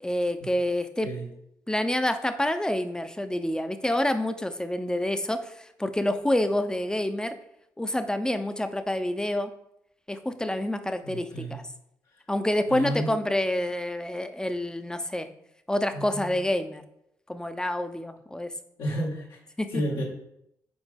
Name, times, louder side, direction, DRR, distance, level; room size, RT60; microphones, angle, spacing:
voice 1, 0.0-1.1 1.7-7.4 7.8-9.5 10.1-11.6 12.3-15.3 15.7-16.8 17.3-18.5 19.6-19.8, left 1 dB, 10° left, 9 dB, 0.8 m, -28 dB
voice 2, 11.0-11.6 12.7-13.1 15.9-16.4 18.8-19.4 19.7-20.0, right 1 dB, 75° left, -3 dB, 1.9 m, -31 dB
5.3 x 4.3 x 5.2 m, 0.77 s
hypercardioid pair, 50°, 8 cm